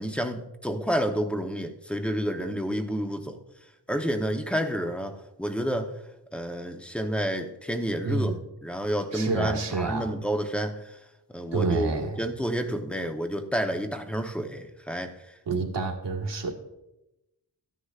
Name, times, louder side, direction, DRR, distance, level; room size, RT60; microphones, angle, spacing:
voice 1, 0.0-3.4 3.9-6.0 6.3-11.0 11.3-15.2, equal, 5° left, 5 dB, 0.9 m, -30 dB
voice 2, 8.0-8.4 9.1-10.1 11.5-12.2 15.5-16.5, right 3 dB, 80° right, 1 dB, 1.7 m, -28 dB
14.5 x 9.9 x 2.4 m, 0.92 s
wide cardioid pair, 120°, 42 cm